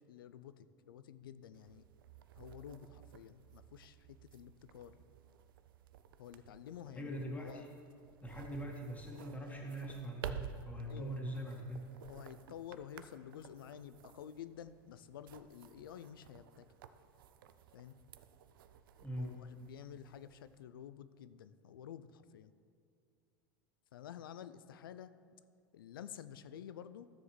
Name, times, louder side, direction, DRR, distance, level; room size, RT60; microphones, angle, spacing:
voice 1, 0.0-1.9 2.4-5.0 6.2-7.6 10.9-11.2 12.0-16.7 17.7-18.0 19.2-22.5 23.9-25.1 25.7-27.1, left 9 dB, 85° left, 14 dB, 0.4 m, -51 dB
sound 1, 1.5-20.6, right 8 dB, 80° right, 0.4 m, -53 dB
voice 2, 6.9-7.7 8.2-11.9 19.0-19.3, right 1 dB, 15° left, 0 dB, 1.6 m, -42 dB
13.0 x 7.1 x 3.2 m, 2.3 s
hypercardioid pair, 100°, 11 cm